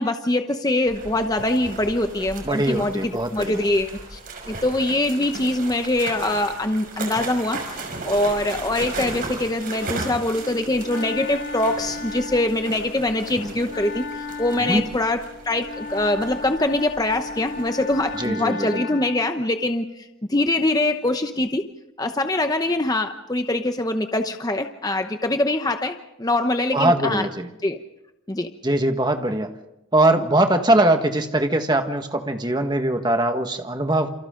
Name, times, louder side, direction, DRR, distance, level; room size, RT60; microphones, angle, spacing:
voice 1, 0.0-4.2 4.5-7.6 8.0-21.6 22.0-27.3 27.6-27.8 28.3-28.5, left 1 dB, 20° left, 6 dB, 0.9 m, -23 dB
sound 1, 0.9-18.3, right 3 dB, 40° right, 6.1 m, -36 dB
voice 2, 2.4-3.7 14.6-14.8 18.2-18.8 26.7-27.5 28.6-29.5 29.9-34.1, right 1 dB, 20° right, 5 dB, 1.6 m, -21 dB
Wind instrument woodwind instrument, 10.3-19.4, left 3 dB, 50° left, 2.4 m, -35 dB
28.5 x 28.5 x 3.8 m, 0.89 s
head